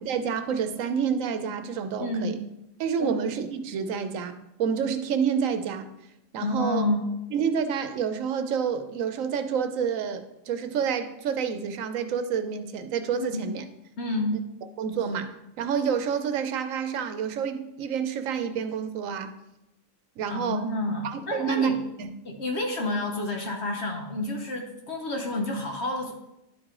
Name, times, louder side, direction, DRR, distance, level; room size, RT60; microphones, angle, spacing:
voice 1, 0.0-2.4 2.8-5.9 6.3-6.8 7.3-13.6 14.8-19.3 20.2-20.6 21.0-22.1, right 7 dB, 85° right, 9 dB, 1.0 m, -28 dB
voice 2, 2.0-2.3 3.0-3.2 6.4-7.1 13.2-13.5 14.0-14.3 20.3-21.8 22.2-26.1, left 2 dB, 60° left, 2 dB, 1.1 m, -29 dB
11.0 x 4.7 x 3.7 m, 0.90 s
omnidirectional pair, 1.3 m